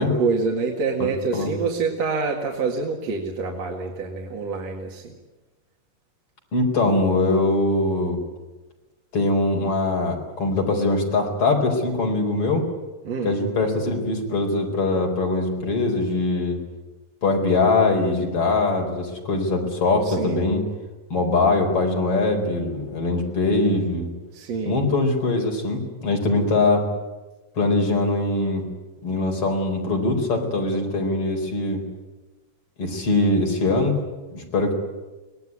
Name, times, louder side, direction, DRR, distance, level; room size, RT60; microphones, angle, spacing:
voice 1, 0.0-5.2 13.0-13.3 20.0-20.4 24.3-24.8, right 4 dB, 55° right, 0 dB, 3.0 m, -26 dB
voice 2, 1.0-1.5 6.5-8.2 9.1-12.7 13.2-16.6 17.2-20.6 21.1-24.1 24.7-26.9 27.6-28.7 29.0-31.8 32.8-34.0 34.3-34.7, left 2 dB, 45° left, 1 dB, 5.3 m, -22 dB
25.0 x 19.0 x 9.7 m, 1.2 s
omnidirectional pair, 3.8 m